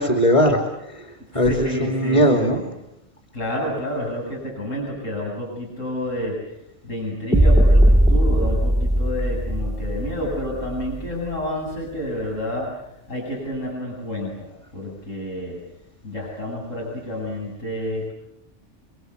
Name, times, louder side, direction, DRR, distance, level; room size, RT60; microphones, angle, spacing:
voice 1, 0.0-2.6, equal, 25° left, 4 dB, 3.0 m, -20 dB
voice 2, 1.3-2.6 3.3-15.6 16.0-18.1, left 1 dB, 90° left, -3 dB, 8.5 m, -29 dB
sound 1, 7.3-11.3, right 1 dB, ahead, 1.3 m, -18 dB
29.0 x 24.5 x 8.2 m, 0.82 s
omnidirectional pair, 1.3 m